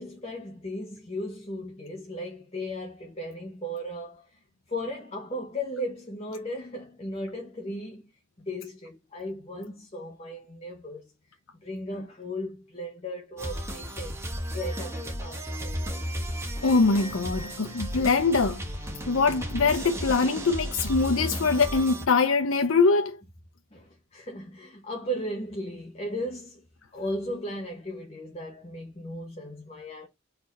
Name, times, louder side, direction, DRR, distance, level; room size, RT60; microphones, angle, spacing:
voice 1, 0.0-4.4 4.7-8.0 8.4-11.0 11.6-14.2 14.5-16.0 23.7-26.7 26.9-30.1, equal, 30° left, 1.4 m, -36 dB
sound 1, 13.4-22.0, equal, 15° right, 1.4 m, -34 dB
voice 2, 16.6-18.6 19.1-23.2, left 4 dB, 80° left, 0.7 m, -23 dB
4.3 x 4.1 x 5.3 m
head